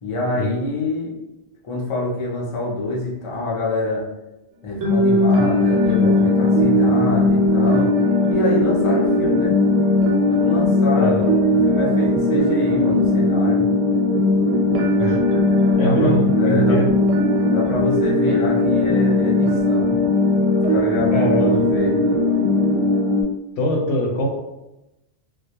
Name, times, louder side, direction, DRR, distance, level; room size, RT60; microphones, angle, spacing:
voice 1, 0.0-1.1 1.6-4.1 4.6-7.9 8.3-9.6 10.3-11.3 11.7-13.7 15.8-16.8 17.5-19.9 20.7-22.0, left 2 dB, 40° left, -4 dB, 0.4 m, -26 dB
sound 1, 4.8-23.2, left 2 dB, 90° right, 0.9 m, -18 dB
voice 2, 10.9-11.3 15.0-15.2 15.8-16.9 21.1-21.6 23.6-24.3, equal, 80° left, 1 dB, 0.9 m, -22 dB
2.2 x 2.1 x 2.8 m, 0.96 s
omnidirectional pair, 1.2 m